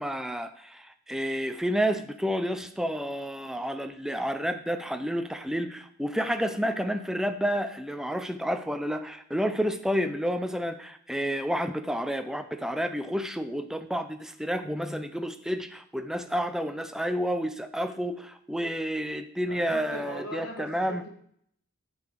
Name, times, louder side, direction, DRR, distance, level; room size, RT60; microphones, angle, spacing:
voice 1, 0.0-21.0, equal, ahead, 8 dB, 0.5 m, -30 dB
voice 2, 19.5-21.1, equal, 70° left, 1 dB, 2.1 m, -40 dB
7.7 x 6.8 x 5.4 m, 0.67 s
head